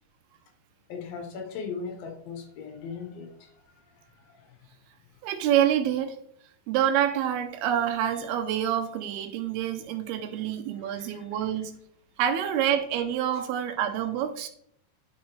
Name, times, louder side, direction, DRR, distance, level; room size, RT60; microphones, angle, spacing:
voice 1, 0.9-3.5 4.3-4.4 10.9-11.0, left 5 dB, 75° left, 4 dB, 2.9 m, -38 dB
voice 2, 5.2-6.2 6.7-11.7 12.2-14.5, right 10 dB, 85° right, 7 dB, 2.8 m, -27 dB
10.5 x 5.9 x 3.4 m, 0.68 s
omnidirectional pair, 4.4 m